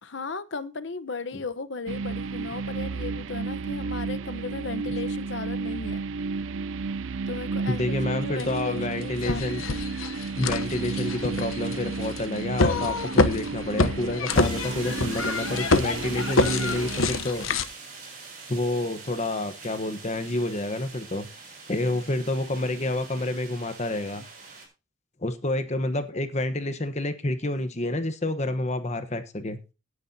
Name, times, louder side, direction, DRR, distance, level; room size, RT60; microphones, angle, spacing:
voice 1, 0.0-6.0 7.3-9.4 25.9-26.2, left 3 dB, 60° left, 14 dB, 1.0 m, -36 dB
sound 1, 1.9-17.2, right 4 dB, 75° right, 0.5 m, -32 dB
voice 2, 7.7-9.6 10.4-17.5 18.5-21.3 21.7-24.2 25.2-29.6, left 1 dB, 35° left, 10 dB, 1.1 m, -29 dB
sound 2, 8.4-8.5 9.0-17.6, left 3 dB, 85° left, 1.0 m, -26 dB
sound 3, 14.3-24.7, right 4 dB, 40° right, 6.6 m, -43 dB
18.0 x 9.7 x 2.8 m, 0.30 s
head